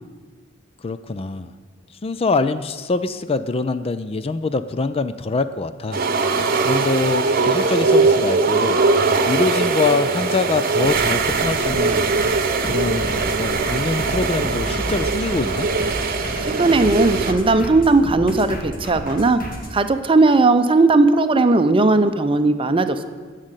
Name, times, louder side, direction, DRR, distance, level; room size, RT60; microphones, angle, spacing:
voice 1, 0.8-1.5 2.0-6.0 6.6-8.8 9.3-12.0 12.7-15.7, left 3 dB, 30° left, 12 dB, 0.4 m, -24 dB
sound 1, 5.9-17.3, right 4 dB, 50° right, 0.9 m, -20 dB
sound 2, 10.8-19.7, equal, 45° left, 2.1 m, -31 dB
voice 2, 16.5-19.4 19.7-23.0, right 3 dB, 30° right, 10 dB, 0.6 m, -17 dB
11.5 x 6.5 x 9.0 m, 1.5 s
head